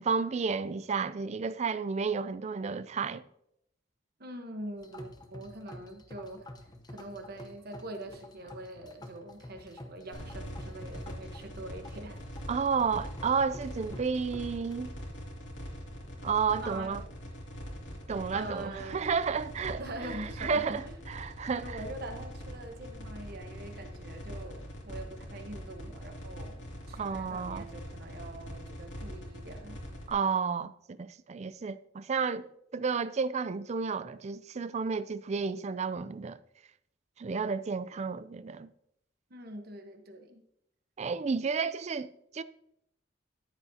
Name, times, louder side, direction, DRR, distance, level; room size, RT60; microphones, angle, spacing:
voice 1, 0.0-3.2 12.5-14.9 16.2-17.0 18.1-21.8 27.0-27.7 30.1-36.4 37.2-38.7 41.0-42.4, right 5 dB, 35° right, 0.4 m, -32 dB
voice 2, 4.2-6.5 6.9-12.2 16.6-16.9 18.3-19.0 19.8-20.9 21.5-29.8 39.3-40.4, right 1 dB, 55° right, 1.1 m, -44 dB
sound 1, 4.8-14.9, left 1 dB, 20° left, 0.8 m, -49 dB
sound 2, 10.1-30.1, equal, 75° left, 2.5 m, -43 dB
13.5 x 8.3 x 2.8 m
head